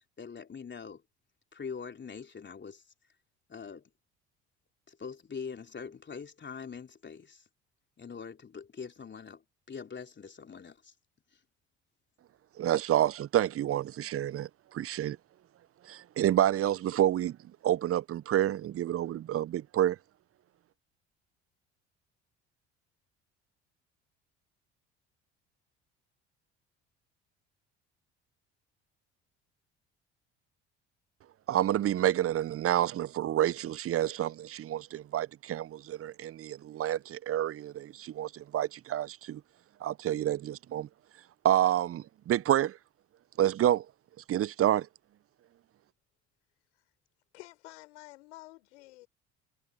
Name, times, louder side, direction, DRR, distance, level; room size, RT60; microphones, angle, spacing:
voice 1, 0.2-1.0 1.5-2.9 3.5-3.9 4.9-7.5 8.0-9.4 9.7-10.9 11.3-11.4, left 6 dB, 30° left, 3.4 m, -43 dB
voice 2, 12.6-15.2 15.8-17.4 17.6-20.0 31.5-39.4 39.8-40.9 41.4-42.8 43.4-43.9 44.3-44.9, right 12 dB, 40° right, 0.8 m, -28 dB
voice 3, 47.3-49.1, left 19 dB, 75° left, 6.9 m, -50 dB
hypercardioid pair, 55°, 35 cm